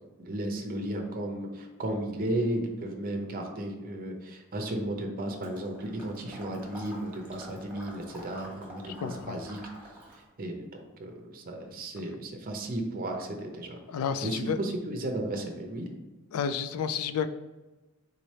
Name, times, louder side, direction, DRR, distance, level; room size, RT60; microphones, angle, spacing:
voice 1, 0.2-9.6 10.1-13.8 14.2-15.9, right 1 dB, 40° right, 3 dB, 0.6 m, -34 dB
Water / Liquid, 5.4-10.3, equal, 5° right, 1.3 m, -47 dB
voice 2, 8.9-9.4 13.9-14.6 16.3-17.3, left 7 dB, 85° left, 10 dB, 0.3 m, -31 dB
3.9 x 3.2 x 4.1 m, 1.2 s
head